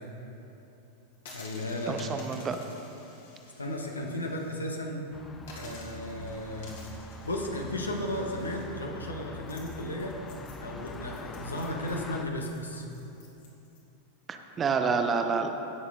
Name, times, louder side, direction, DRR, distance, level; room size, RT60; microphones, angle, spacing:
sound 1, 1.1-4.6 4.9-5.0 5.4-13.8, left 3 dB, 60° left, 2.2 m, -51 dB
voice 1, 1.3-2.0 3.6-5.0 5.5-6.7 7.2-10.1 10.6-12.9, left 1 dB, 80° left, 1 dB, 1.4 m, -34 dB
voice 2, 1.9-2.6 14.3-15.5, right 5 dB, 25° right, 6 dB, 0.7 m, -28 dB
sound 2, 5.1-12.2, left 3 dB, 20° left, 0.6 m, -44 dB
17.5 x 6.9 x 3.8 m, 2.9 s
figure-of-eight pair, 90°, 0 cm